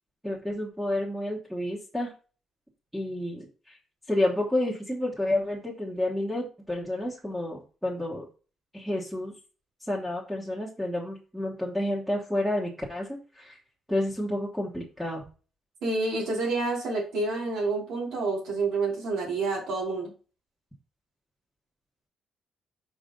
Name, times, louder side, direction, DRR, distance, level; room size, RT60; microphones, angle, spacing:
voice 1, 0.2-2.1 2.9-3.8 4.1-8.3 8.7-9.3 9.9-13.6 13.9-15.2, left 1 dB, ahead, -3 dB, 1.2 m, -30 dB
voice 2, 15.8-20.1, right 3 dB, 85° right, -5 dB, 3.1 m, -28 dB
5.2 x 4.8 x 3.8 m, 0.37 s
cardioid pair, 130°, 0 cm